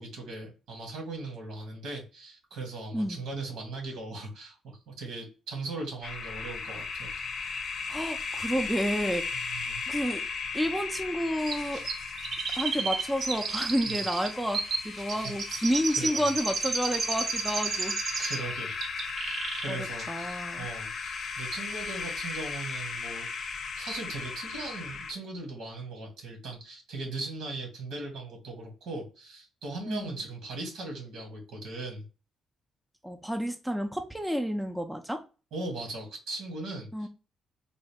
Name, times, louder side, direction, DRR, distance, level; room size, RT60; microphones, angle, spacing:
voice 1, 0.0-7.2 9.3-9.9 13.9-14.0 15.0-16.2 18.1-18.8 19.1-23.3 23.8-32.0 35.5-37.1, right 3 dB, 80° right, 1 dB, 1.9 m, -39 dB
sound 1, 6.0-25.1, left 5 dB, 55° left, 0.6 m, -37 dB
voice 2, 7.9-9.3 9.9-10.2 10.5-11.8 12.5-18.2 19.7-20.7 29.9-30.2 33.0-35.2 36.9-37.1, equal, 5° right, 5 dB, 0.5 m, -30 dB
Chirp tweet, 11.5-18.5 18.8-19.7 20.0-20.1, right 4 dB, 60° right, 0.9 m, -32 dB
3.9 x 2.1 x 3.4 m, 0.33 s
cardioid pair, 90°, 0 cm